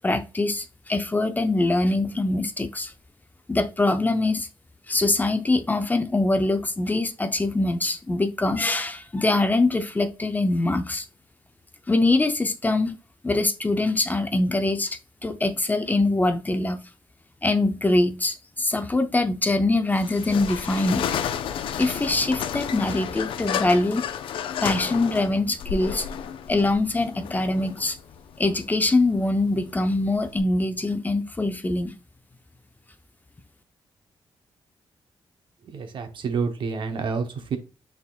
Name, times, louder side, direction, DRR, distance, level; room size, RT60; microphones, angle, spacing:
voice 1, 0.0-2.9 3.5-4.5 4.9-11.0 11.9-13.0 13.2-16.8 17.4-21.1 21.8-24.1 24.6-26.1 26.5-28.0 28.4-31.9, left 2 dB, 20° left, 0.5 m, -23 dB
sound 1, 19.9-30.4, left 8 dB, 85° left, 0.4 m, -32 dB
voice 2, 35.7-37.6, right 5 dB, 70° right, 0.8 m, -28 dB
5.9 x 3.6 x 2.3 m
cardioid pair, 85°, 9 cm